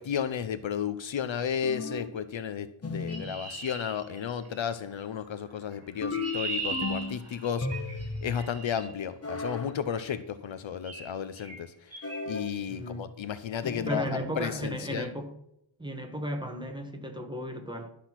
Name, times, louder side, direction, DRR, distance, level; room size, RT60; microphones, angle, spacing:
voice 1, 0.0-7.7 8.2-11.7 12.3-15.1, left 8 dB, 65° left, 0.8 m, -33 dB
sound 1, 1.6-2.2 2.8-3.3 6.0-7.2 7.6-8.3 9.2-9.7 12.0-12.5 13.6-14.1, left 3 dB, 30° left, 1.2 m, -34 dB
Chirp tweet, 3.1-4.7 5.7-8.9 10.0-10.2 10.8-11.1 11.4-11.6 11.9-12.2, right 3 dB, 30° right, 3.7 m, -39 dB
voice 2, 12.7-13.1 13.8-15.4 15.8-17.9, equal, 10° right, 1.4 m, -35 dB
12.0 x 6.2 x 5.9 m
wide cardioid pair, 155°, 49 cm